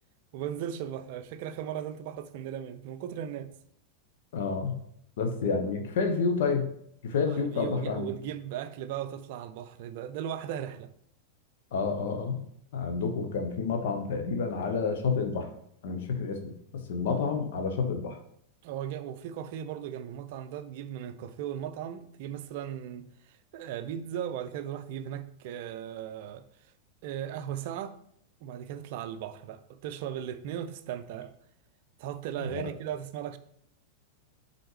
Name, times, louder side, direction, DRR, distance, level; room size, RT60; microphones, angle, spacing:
voice 1, 0.3-3.5 7.3-10.9 18.6-23.1 23.5-26.4 27.0-28.0 28.4-31.3 32.0-33.4, right 10 dB, 50° right, 0.4 m, -37 dB
voice 2, 4.3-4.8 5.2-6.7 7.0-8.1 11.7-12.4 12.7-15.5 15.8-18.2 32.4-32.6, left 5 dB, 55° left, 0.9 m, -29 dB
7.7 x 4.2 x 3.3 m
figure-of-eight pair, 90°, 0 cm